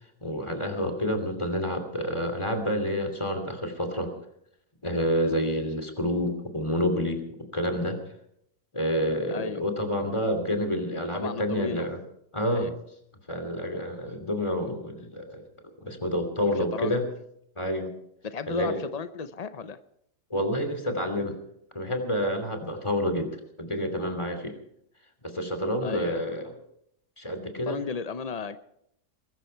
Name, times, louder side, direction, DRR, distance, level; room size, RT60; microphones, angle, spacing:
voice 1, 0.2-4.1 4.8-8.0 8.7-12.0 12.3-12.7 13.3-15.4 15.8-17.1 17.6-17.9 18.5-18.8 20.3-21.4 21.7-24.6 25.2-26.5 27.2-27.8, equal, 15° left, 7 dB, 2.8 m, -28 dB
voice 2, 9.3-9.6 11.1-11.9 12.5-12.7 16.4-17.0 18.2-19.8 25.8-26.2 27.7-28.6, left 6 dB, 65° left, 11 dB, 0.4 m, -34 dB
21.0 x 13.5 x 4.6 m, 0.74 s
omnidirectional pair, 1.7 m